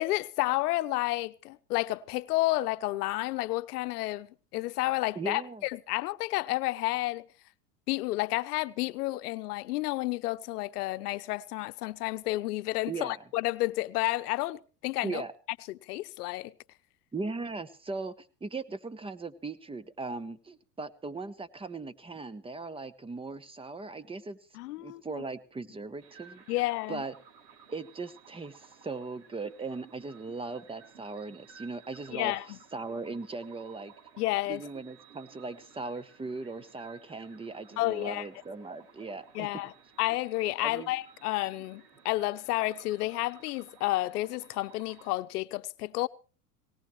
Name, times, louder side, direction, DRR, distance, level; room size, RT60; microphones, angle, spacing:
voice 1, 0.0-4.3 4.5-7.3 7.9-15.2 15.7-16.5 24.5-25.0 26.5-27.0 32.1-32.6 34.2-34.6 37.8-38.3 39.3-39.7 40.0-46.1, left 18 dB, 75° left, 0.8 m, -31 dB
voice 2, 5.1-5.6 12.9-13.2 15.0-15.3 17.1-24.4 24.8-27.2 27.7-33.9 34.5-39.5 40.6-40.9, right 3 dB, 10° right, 1.0 m, -39 dB
sound 1, 26.0-45.2, right 6 dB, 75° right, 5.6 m, -56 dB
19.0 x 18.0 x 3.2 m
hypercardioid pair, 100°, 47 cm